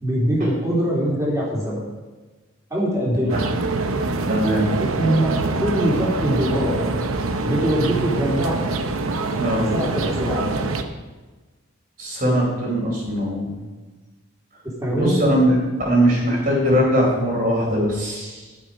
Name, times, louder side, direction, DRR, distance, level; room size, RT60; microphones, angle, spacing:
voice 1, 0.0-1.8 2.7-3.4 4.8-6.8 7.4-8.6 9.7-10.5 14.8-15.2, equal, 15° right, -6 dB, 3.4 m, -22 dB
sound 1, 3.3-10.8, right 3 dB, 85° right, 0.9 m, -24 dB
voice 2, 4.3-4.7 9.4-9.7 12.0-13.6 14.9-15.6 15.9-18.4, equal, 40° right, -3 dB, 4.2 m, -20 dB
11.5 x 8.8 x 5.0 m, 1.3 s
head